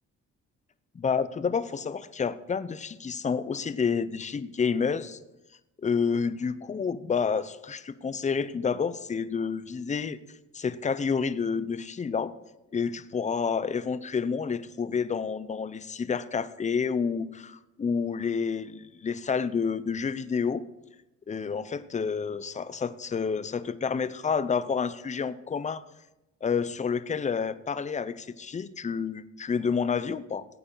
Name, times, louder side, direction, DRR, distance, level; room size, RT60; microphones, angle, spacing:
voice 1, 0.9-5.2 5.8-10.2 10.5-12.3 12.7-20.6 21.3-25.8 26.4-30.5, left 6 dB, 25° left, 15 dB, 0.6 m, -29 dB
16.0 x 8.8 x 3.9 m, 0.97 s
cardioid pair, 90°, 30 cm